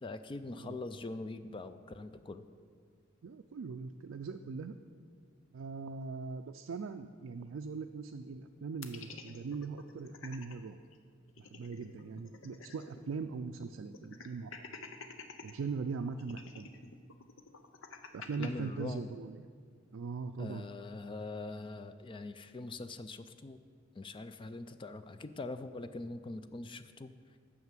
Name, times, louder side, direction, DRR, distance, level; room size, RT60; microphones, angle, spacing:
voice 1, 0.0-2.5 18.4-19.1 20.4-23.6 24.0-27.1, left 2 dB, 25° left, 11 dB, 0.4 m, -43 dB
voice 2, 3.2-4.8 5.5-10.8 11.4-14.5 15.4-16.7 18.1-19.5 19.9-20.7, right 4 dB, 70° right, 6 dB, 0.4 m, -40 dB
sound 1, 8.8-10.5 10.9-11.0 11.3-13.1 13.3-13.4 13.9-15.5 16.2-18.5, left 5 dB, 75° left, 0.8 m, -49 dB
9.4 x 6.4 x 7.4 m, 2.1 s
head